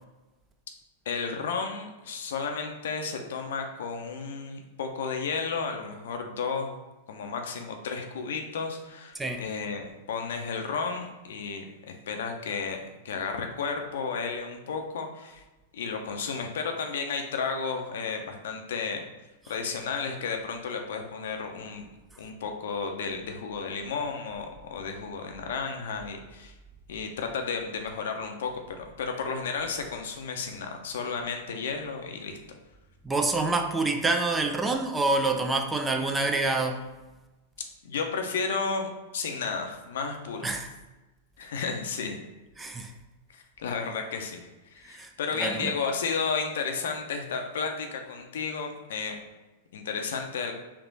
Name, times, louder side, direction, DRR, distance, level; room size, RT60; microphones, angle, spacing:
voice 1, 1.1-6.7 7.1-15.4 15.7-19.1 19.5-21.9 22.2-26.5 26.9-32.4 37.8-40.4 41.4-42.2 43.3-49.2 49.7-50.5, left 5 dB, 70° left, 4 dB, 0.6 m, -33 dB
voice 2, 33.0-36.9 40.4-40.7 42.6-42.9 44.8-45.1 45.4-45.7, right 3 dB, 15° right, 5 dB, 0.4 m, -27 dB
3.5 x 2.9 x 3.9 m, 1.1 s
hypercardioid pair, 105°, 0 cm